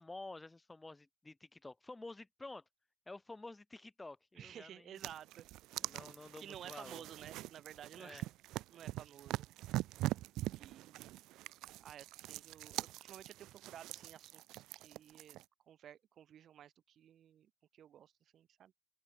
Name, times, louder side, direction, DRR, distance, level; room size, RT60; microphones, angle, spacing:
voice 1, 0.0-2.6 3.1-5.0 5.8-7.0 7.9-8.3, left 2 dB, 10° left, 2.4 m, -50 dB
voice 2, 4.4-5.5 6.4-8.2 8.7-9.5 10.5-11.2 11.8-15.4 15.7-18.7, right 10 dB, 45° right, 5.1 m, -54 dB
sound 1, 5.0-15.5, right 17 dB, 70° right, 2.1 m, -43 dB
open air
cardioid pair, 135°, 0 cm